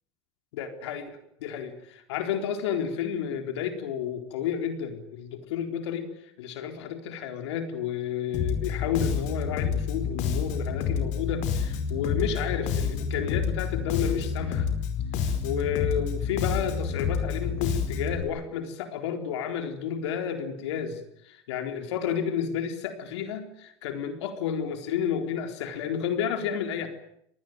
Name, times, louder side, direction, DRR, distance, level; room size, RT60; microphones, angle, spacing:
voice 1, 0.5-6.1 6.4-14.7 15.4-26.9, left 8 dB, 80° left, 6 dB, 4.2 m, -31 dB
Bass guitar, 8.3-18.2, left 6 dB, 60° left, 4.8 m, -29 dB
26.0 x 19.5 x 9.2 m, 0.74 s
hypercardioid pair, 95°, 14 cm